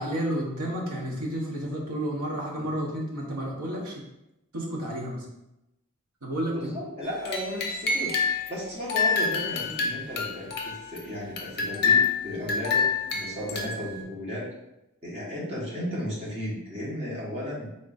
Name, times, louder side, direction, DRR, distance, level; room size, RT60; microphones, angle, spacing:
voice 1, 0.0-4.0 4.5-5.3 6.2-6.7, right 1 dB, 90° right, -2 dB, 1.0 m, -31 dB
voice 2, 6.5-8.1 8.5-14.5 15.0-17.7, left 1 dB, 30° right, -6 dB, 1.2 m, -34 dB
sound 1, 7.0-8.5 8.9-11.0 11.4-14.0, left 5 dB, 50° left, 0.6 m, -27 dB
3.8 x 2.5 x 4.0 m, 0.89 s
head